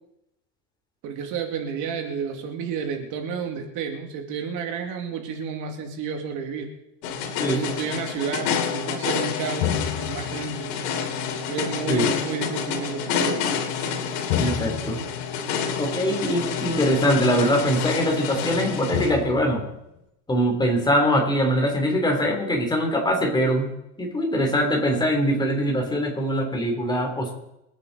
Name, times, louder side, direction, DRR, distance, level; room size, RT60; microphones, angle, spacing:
voice 1, 1.0-6.7 7.4-10.7 11.5-13.4, right 6 dB, 55° right, 3 dB, 2.5 m, -31 dB
sound 1, 7.0-19.8, left 7 dB, 75° left, 2.9 m, -28 dB
voice 2, 14.3-15.0 15.8-19.6 20.3-23.7 24.0-27.3, equal, 10° left, 1 dB, 3.4 m, -22 dB
26.0 x 9.1 x 4.1 m, 0.87 s
supercardioid pair, 140°, 37 cm